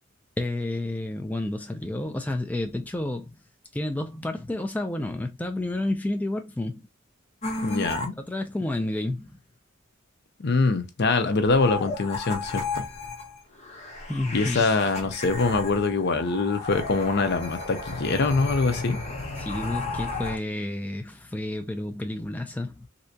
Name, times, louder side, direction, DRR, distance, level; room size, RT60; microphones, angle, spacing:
voice 1, 0.4-3.3 3.7-6.8 8.2-9.4 14.1-14.6 19.4-22.9, left 1 dB, 10° left, 0.3 m, -30 dB
sound 1, 7.4-8.1 11.3-20.4, left 3 dB, 35° left, 0.9 m, -33 dB
voice 2, 7.6-8.1 10.4-12.8 14.3-19.0, left 3 dB, 55° left, 0.6 m, -24 dB
3.2 x 2.7 x 2.7 m
head